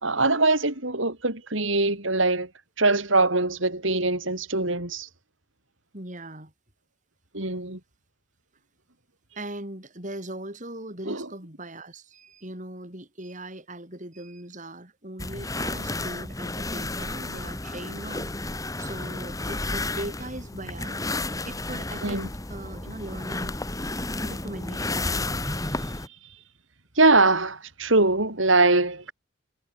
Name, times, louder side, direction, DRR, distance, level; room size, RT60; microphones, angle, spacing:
voice 1, 0.0-2.5 2.8-5.1 7.3-7.8 11.1-11.3 22.0-22.3 25.6-25.7 27.0-29.1, right 2 dB, 70° right, 5.4 m, -22 dB
voice 2, 5.9-6.5 9.4-18.3 18.8-21.0 21.4-22.2 22.5-23.6 24.2-25.2, right 1 dB, 35° right, 4.2 m, -39 dB
sound 1, 15.2-26.1, left 2 dB, 15° left, 1.7 m, -32 dB
head